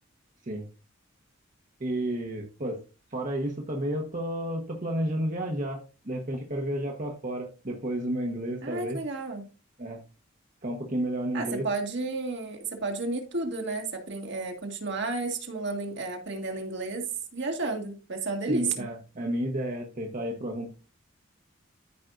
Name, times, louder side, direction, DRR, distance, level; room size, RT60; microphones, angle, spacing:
voice 1, 1.8-2.8 3.1-9.0 9.8-10.0 10.6-11.7 18.5-20.7, right 1 dB, 40° right, 1.2 m, -31 dB
voice 2, 8.6-9.5 11.3-18.9, right 3 dB, 60° right, 1.8 m, -32 dB
14.0 x 5.3 x 2.6 m
head